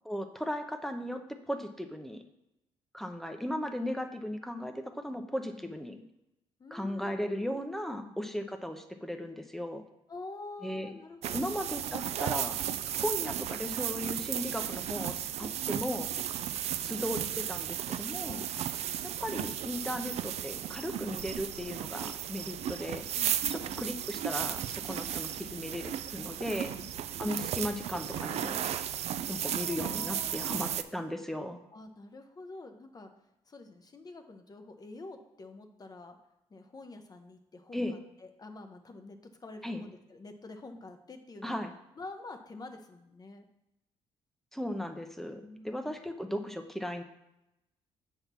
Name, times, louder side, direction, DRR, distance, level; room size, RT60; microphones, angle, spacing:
voice 1, 0.1-1.2 1.5-2.2 2.9-6.0 6.7-9.8 10.6-10.9 11.3-12.6 13.0-16.1 16.8-18.4 19.0-23.0 23.5-26.7 27.2-28.6 29.3-31.6 37.7-38.0 39.6-39.8 41.4-41.7 44.5-47.0, left 1 dB, 5° left, 6 dB, 0.7 m, -36 dB
voice 2, 5.5-5.8 6.6-7.6 8.0-8.2 10.1-11.6 12.7-12.8 18.2-18.5 23.1-23.9 26.7-26.9 29.0-30.8 31.7-33.1 33.5-36.2 36.5-41.6 42.0-43.5 45.4-45.9, left 3 dB, 35° left, 5 dB, 0.8 m, -48 dB
sound 1, 11.2-30.8, right 10 dB, 65° right, 0.4 m, -35 dB
7.0 x 3.6 x 5.8 m, 0.90 s
supercardioid pair, 70°, 12 cm